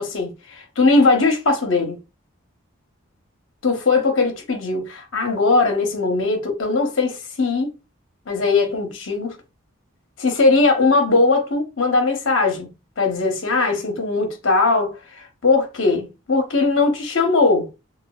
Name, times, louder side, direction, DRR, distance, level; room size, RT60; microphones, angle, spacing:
voice 1, 0.0-2.0 3.6-7.7 8.3-9.4 10.2-17.7, left 3 dB, 60° left, 0.8 m, -20 dB
3.3 x 2.2 x 2.3 m
head